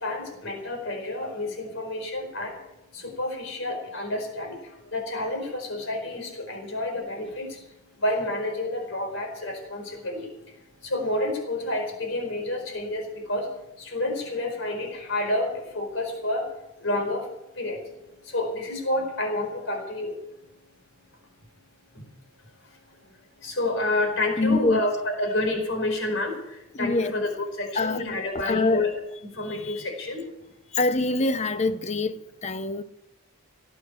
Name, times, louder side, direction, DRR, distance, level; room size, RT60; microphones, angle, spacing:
voice 1, 0.0-2.6 2.9-16.5 16.8-17.3 17.5-20.2 21.9-22.1 22.6-23.1 23.3-27.3 27.6-28.9 29.3-30.3, left 1 dB, 60° left, 4.7 m, -29 dB
voice 2, 24.4-24.8 26.7-27.1 27.7-28.9 29.4-29.9 30.7-32.8, left 3 dB, 30° left, 0.7 m, -25 dB
18.0 x 8.9 x 8.1 m
head